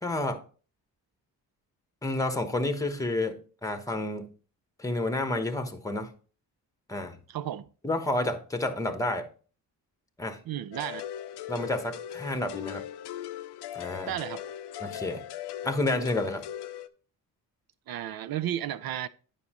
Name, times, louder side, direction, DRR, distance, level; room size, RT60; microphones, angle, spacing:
voice 1, 0.0-0.4 2.0-4.2 4.8-6.1 6.9-7.2 7.8-9.3 10.2-10.4 11.5-12.8 13.7-14.1 14.8-15.2 15.6-16.4, left 2 dB, 10° left, 1.1 m, -30 dB
voice 2, 7.3-7.7 10.5-11.1 14.1-14.4 17.9-19.1, right 11 dB, 65° right, 0.6 m, -33 dB
sound 1, 10.7-16.9, left 11 dB, 90° left, 0.6 m, -39 dB
9.5 x 5.5 x 3.0 m
cardioid pair, 100°, 39 cm